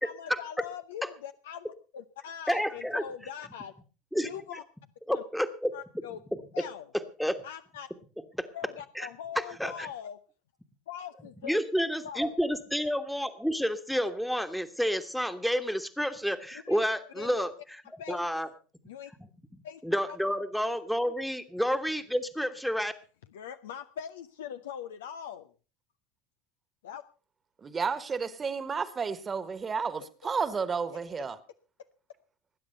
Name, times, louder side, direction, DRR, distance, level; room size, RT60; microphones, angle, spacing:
voice 1, 0.0-3.7 4.2-4.6 5.1-5.2 5.7-6.2 6.5-6.9 7.4-7.9 8.5-10.2 10.9-11.6 12.0-12.3 16.6-16.8 17.1-17.4 18.0-18.3 18.9-19.1 19.6-19.8 20.1-20.2 23.3-25.5 26.8-27.0, left 9 dB, 70° left, 0.7 m, -42 dB
voice 2, 2.5-3.0 4.1-4.3 5.1-5.7 7.2-7.4 8.4-8.5 9.0-9.1 9.6-9.9 11.4-18.5 19.8-22.9, equal, ahead, 1.4 m, -30 dB
voice 3, 27.6-31.4, right 5 dB, 25° right, 1.5 m, -32 dB
19.5 x 9.6 x 5.5 m
figure-of-eight pair, 70°, 0 cm